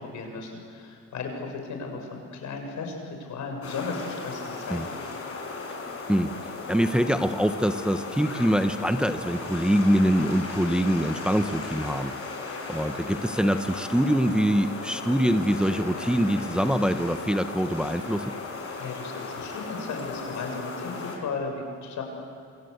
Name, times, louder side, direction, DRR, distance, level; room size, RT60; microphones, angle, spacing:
voice 1, 0.0-5.0 18.8-22.0, left 4 dB, 70° left, 3 dB, 6.9 m, -35 dB
sound 1, 3.6-21.2, left 4 dB, 50° left, 6.7 m, -36 dB
voice 2, 6.7-12.2 12.7-18.3, equal, 5° right, 8 dB, 1.1 m, -24 dB
27.5 x 26.0 x 8.2 m, 2.4 s
cardioid pair, 90°, 30 cm